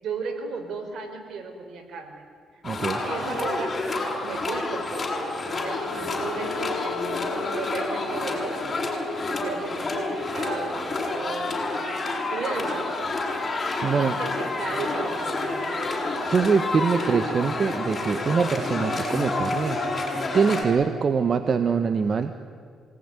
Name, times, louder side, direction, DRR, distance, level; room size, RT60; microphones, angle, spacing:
voice 1, 0.0-2.2 3.0-8.7 9.2-11.7 12.3-12.9 13.6-15.9 17.0-17.2, right 4 dB, 70° right, 4 dB, 4.8 m, -35 dB
sound 1, 2.6-20.6, left 2 dB, 35° left, 6.8 m, -29 dB
voice 2, 2.6-3.0 13.8-14.2 16.3-19.8 20.3-22.3, right 5 dB, 45° right, 8 dB, 1.3 m, -23 dB
Wind instrument woodwind instrument, 4.9-9.4, left 12 dB, 85° left, 1.2 m, -39 dB
27.0 x 19.5 x 9.9 m, 2.1 s
cardioid pair, 80°, 0 cm